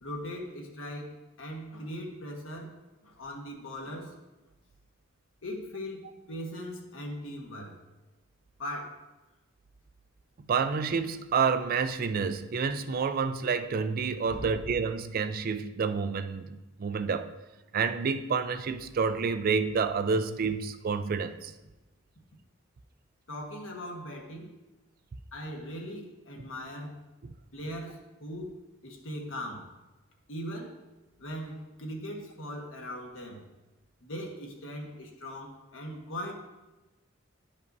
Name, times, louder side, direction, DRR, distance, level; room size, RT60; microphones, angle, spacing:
voice 1, 0.0-2.7 3.0-4.1 5.4-7.8 8.6-9.0 14.3-14.5 23.3-24.5 25.3-26.9 27.5-29.7 30.3-30.8 31.2-33.4 34.0-36.3, equal, 75° left, 1 dB, 1.3 m, -39 dB
voice 2, 10.4-17.3 17.7-21.5, right 5 dB, 45° right, 11 dB, 0.4 m, -29 dB
10.5 x 5.3 x 2.6 m, 1.1 s
head